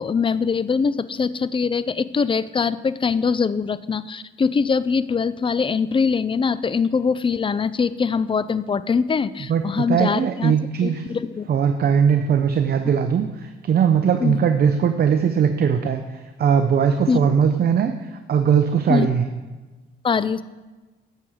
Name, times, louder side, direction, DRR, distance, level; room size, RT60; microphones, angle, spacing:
voice 1, 0.0-11.5 14.2-14.4 17.1-17.2 18.9-19.1 20.0-20.4, left 5 dB, 25° left, 16 dB, 0.5 m, -22 dB
voice 2, 9.5-11.0 11.5-16.0 16.4-19.2, right 7 dB, 50° right, 7 dB, 0.8 m, -20 dB
12.5 x 7.6 x 4.9 m, 1.2 s
cardioid pair, 90°, 20 cm